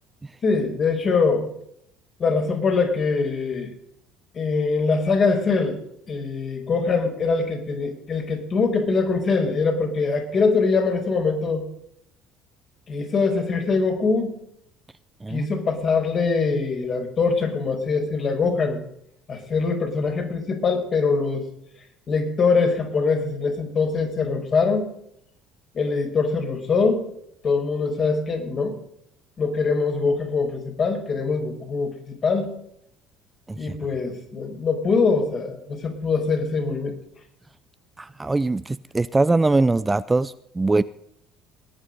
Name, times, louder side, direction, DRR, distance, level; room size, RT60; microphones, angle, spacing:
voice 1, 0.4-1.5 2.2-3.7 4.3-5.8 6.1-11.6 12.9-14.4 15.3-18.8 19.3-21.4 22.1-24.9 25.7-27.1 27.4-28.8 29.4-32.6 33.6-36.9, left 4 dB, 45° left, 3 dB, 5.2 m, -23 dB
voice 2, 38.0-40.8, right 3 dB, 15° right, 15 dB, 0.5 m, -22 dB
20.5 x 9.6 x 5.3 m, 0.72 s
supercardioid pair, 90°, 0 cm